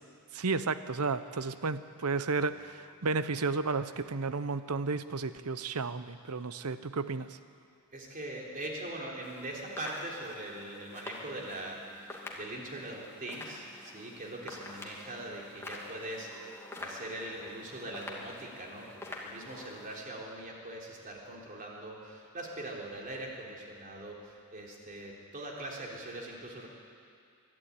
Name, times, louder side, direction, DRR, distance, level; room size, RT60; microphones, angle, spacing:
voice 1, 0.3-7.3, right 4 dB, 80° right, 13 dB, 0.8 m, -32 dB
voice 2, 7.9-26.7, right 1 dB, 40° right, -2 dB, 3.6 m, -42 dB
sound 1, 9.2-20.0, left 2 dB, 10° left, 2.4 m, -47 dB
22.5 x 12.5 x 9.6 m, 2.4 s
head